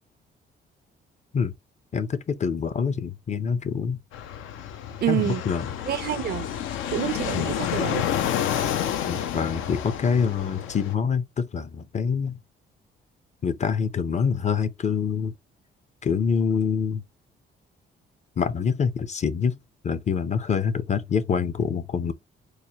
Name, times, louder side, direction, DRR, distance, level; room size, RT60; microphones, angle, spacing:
voice 1, 1.9-4.0 5.1-5.7 7.3-7.5 9.1-12.4 13.4-15.3 16.0-17.0 18.4-19.6 19.8-22.1, left 6 dB, 35° left, 0.5 m, -25 dB
Fixed-wing aircraft airplane, 4.1-10.9, left 10 dB, 85° left, 0.5 m, -29 dB
voice 2, 5.0-5.4 5.9-6.5 6.9-8.1, right 11 dB, 55° right, 0.4 m, -27 dB
4.7 x 2.1 x 2.7 m
cardioid pair, 90°, 20 cm